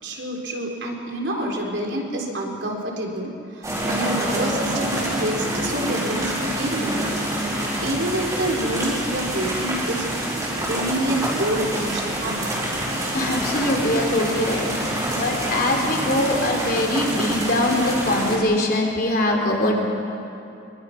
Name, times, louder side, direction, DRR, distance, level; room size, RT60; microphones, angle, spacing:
voice 1, 0.0-7.0 7.8-10.1 10.7-12.5, right 1 dB, 70° right, 0 dB, 4.0 m, -27 dB
sound 1, 3.6-18.4, right 1 dB, 20° right, 4.8 m, -26 dB
voice 2, 13.1-14.7 15.1-19.8, left 1 dB, 50° left, 1 dB, 3.7 m, -22 dB
25.0 x 23.5 x 6.0 m, 2.6 s
head